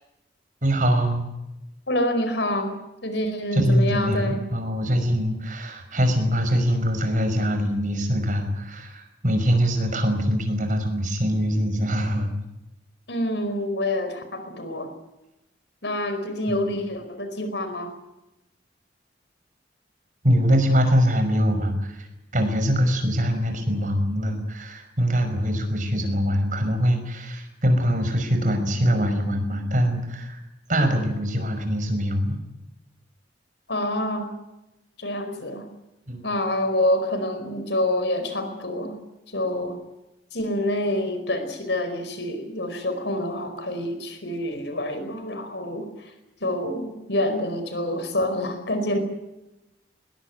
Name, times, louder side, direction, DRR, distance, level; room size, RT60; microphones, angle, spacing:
voice 1, 0.6-1.3 3.5-12.3 16.5-16.6 20.2-22.1 22.3-30.4 30.7-32.4 36.1-36.3, equal, 45° right, 6 dB, 5.4 m, -23 dB
voice 2, 1.9-4.5 13.1-14.9 15.8-17.9 33.7-34.3 35.0-35.7 36.2-39.0 39.3-39.8 40.3-46.1 46.4-49.0, left 1 dB, 75° left, 8 dB, 4.7 m, -27 dB
21.0 x 21.0 x 9.4 m, 0.96 s
head